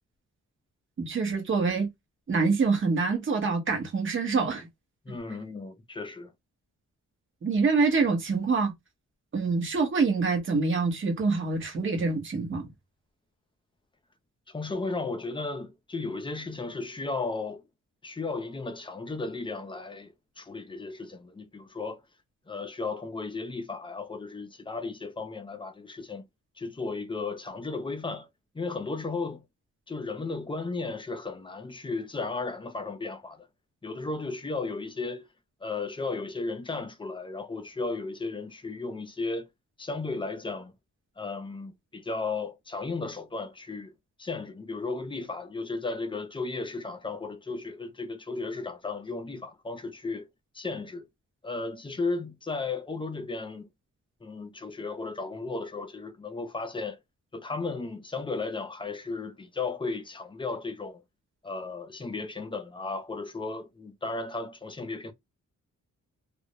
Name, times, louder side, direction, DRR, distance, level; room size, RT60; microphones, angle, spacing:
voice 1, 1.0-1.9 2.3-4.7 7.4-8.7 9.3-12.7, right 4 dB, 40° right, 0.9 m, -26 dB
voice 2, 5.1-6.3 14.5-17.6 18.0-22.0 22.5-26.2 26.6-28.3 28.5-29.4 29.9-33.5 33.8-35.3 35.6-39.4 39.8-40.7 41.2-43.9 44.2-50.3 50.5-51.1 51.4-53.7 54.2-57.0 57.3-61.0 61.4-65.1, left 3 dB, 15° left, 0.4 m, -35 dB
2.3 x 2.0 x 2.8 m
wide cardioid pair, 120°, 31 cm